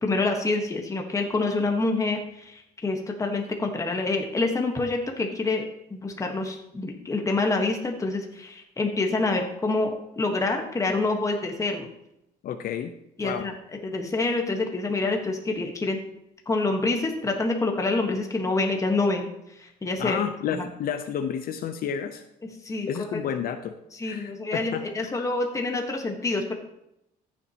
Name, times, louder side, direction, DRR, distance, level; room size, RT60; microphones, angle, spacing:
voice 1, 0.0-5.6 5.9-11.9 13.2-13.5 13.8-16.0 16.5-19.3 19.6-20.2 20.5-20.6 22.6-23.2 24.0-26.6, left 3 dB, 20° left, 3 dB, 1.3 m, -27 dB
voice 2, 12.4-12.9 13.2-13.5 20.0-22.2 22.9-23.7 24.0-25.2, left 8 dB, 60° left, 9 dB, 0.7 m, -31 dB
14.5 x 7.2 x 2.9 m, 0.82 s
cardioid pair, 110°, 17 cm